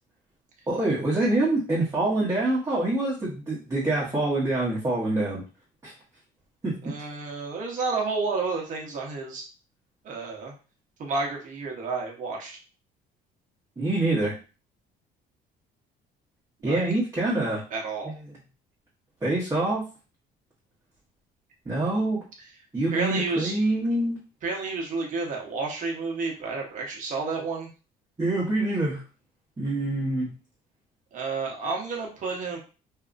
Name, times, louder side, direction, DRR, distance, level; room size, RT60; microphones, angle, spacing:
voice 1, 0.7-5.4 5.8-5.9 6.6-6.8 13.8-14.3 16.6-17.6 18.3-18.4 19.2-19.8 21.7-22.2 22.7-24.2 28.2-29.0 29.6-30.3, right 2 dB, 20° right, -8 dB, 1.1 m, -25 dB
voice 2, 6.8-9.5 10.0-10.5 11.0-12.6 16.6-16.8 17.7-18.1 22.9-23.6 24.4-27.7 31.1-32.6, right 4 dB, 50° right, -1 dB, 0.9 m, -30 dB
2.7 x 2.4 x 2.4 m, 0.34 s
cardioid pair, 110°, 17 cm